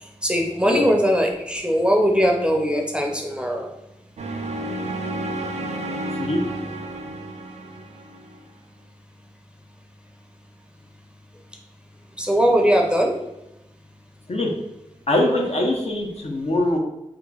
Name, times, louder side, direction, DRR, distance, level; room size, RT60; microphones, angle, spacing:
voice 1, 0.0-3.7 12.2-13.2, equal, 10° right, 1 dB, 0.6 m, -20 dB
sound 1, 4.2-8.4, right 1 dB, 65° right, 0.5 m, -31 dB
voice 2, 15.1-16.8, left 1 dB, 55° left, -1 dB, 0.7 m, -22 dB
3.0 x 2.3 x 3.7 m, 0.91 s
cardioid pair, 45°, 13 cm